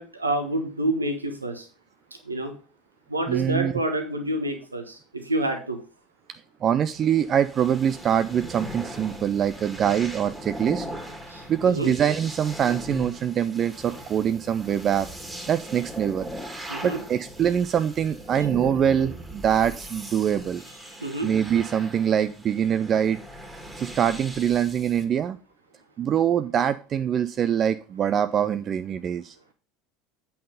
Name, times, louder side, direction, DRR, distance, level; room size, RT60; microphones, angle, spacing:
voice 1, 0.0-1.7 2.2-2.5 3.1-5.8 11.3-11.9 16.7-17.0 21.0-21.3, right 1 dB, 85° right, 5 dB, 1.3 m, -28 dB
voice 2, 3.3-3.7 6.6-10.9 11.5-15.1 15.5-16.3 16.8-20.6 21.2-23.2 23.8-25.4 26.0-29.4, right 9 dB, 35° right, 12 dB, 0.4 m, -24 dB
sound 1, 6.9-25.0, equal, 15° right, 2.1 m, -39 dB
8.6 x 5.7 x 5.0 m, 0.37 s
figure-of-eight pair, 70°, 0 cm